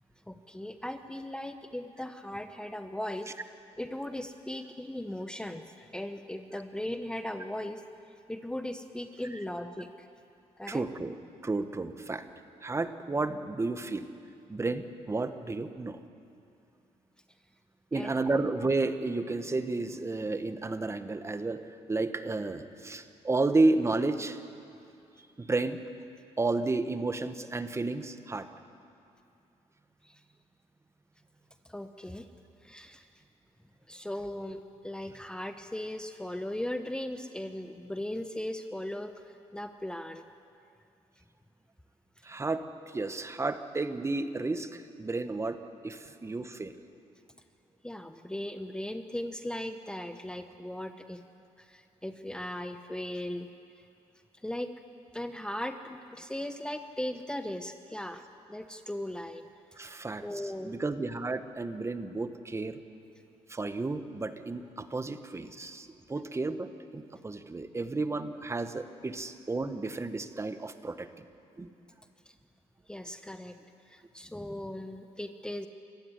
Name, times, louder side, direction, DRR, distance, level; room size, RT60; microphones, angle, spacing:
voice 1, 0.3-3.3 3.8-7.8 8.3-10.1 10.6-10.9 17.9-18.2 30.0-30.2 31.7-32.3 32.6-33.1 33.9-39.1 39.5-40.2 47.8-51.2 51.6-53.5 54.4-54.7 55.1-58.2 58.5-59.4 60.2-60.8 72.9-73.6 73.9-75.7, left 1 dB, 5° left, 8 dB, 1.0 m, -38 dB
voice 2, 10.7-11.2 11.4-12.2 12.6-14.1 14.5-16.0 17.9-21.6 21.9-24.4 25.4-25.8 26.4-28.5 42.2-45.6 45.8-46.7 59.8-60.2 60.6-62.8 63.5-66.7 66.9-71.2 71.6-71.7, right 3 dB, 20° right, 10 dB, 1.4 m, -32 dB
25.5 x 14.5 x 9.7 m, 2.6 s
cardioid pair, 85°, 12 cm